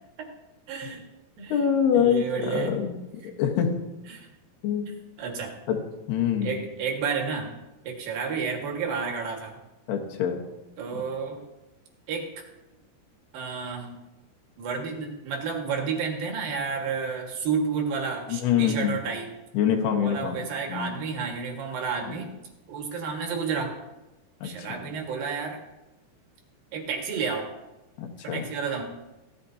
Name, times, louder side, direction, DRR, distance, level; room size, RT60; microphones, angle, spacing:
voice 1, 0.7-1.0 1.4-1.6 1.9-2.7 4.1-4.3 5.2-5.5 6.4-7.5 7.8-9.6 10.8-11.5 12.1-12.4 13.3-14.0 14.6-19.3 19.9-22.4 22.7-23.8 24.4-25.6 26.7-27.5 28.2-28.8, right 5 dB, 65° right, 1 dB, 3.3 m, -31 dB
voice 2, 1.5-3.0 3.4-3.7 4.6-4.9 5.7-5.8 6.1-6.6 9.9-10.4 18.3-19.0 19.5-20.4 20.7-20.9 22.1-22.2 24.4-24.8 28.0-28.5, left 8 dB, 80° left, 2 dB, 3.3 m, -25 dB
17.5 x 13.5 x 2.8 m, 1.0 s
omnidirectional pair, 4.7 m